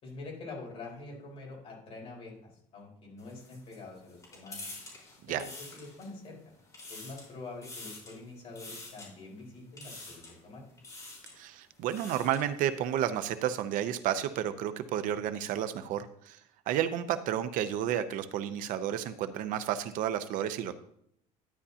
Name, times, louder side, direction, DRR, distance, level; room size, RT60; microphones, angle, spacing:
voice 1, 0.0-4.6 5.3-6.4 6.9-10.6, left 3 dB, 40° left, -2 dB, 4.3 m, -45 dB
sound 1, 3.2-6.3 6.6-7.3 7.6-8.2 8.6-9.1 9.8-10.4 10.8-11.4 11.7-12.5, left 2 dB, 20° left, 4.1 m, -46 dB
voice 2, 11.4-16.4 16.7-20.7, right 10 dB, 60° right, 11 dB, 0.6 m, -31 dB
12.0 x 9.9 x 2.8 m, 0.70 s
cardioid pair, 165°, 15 cm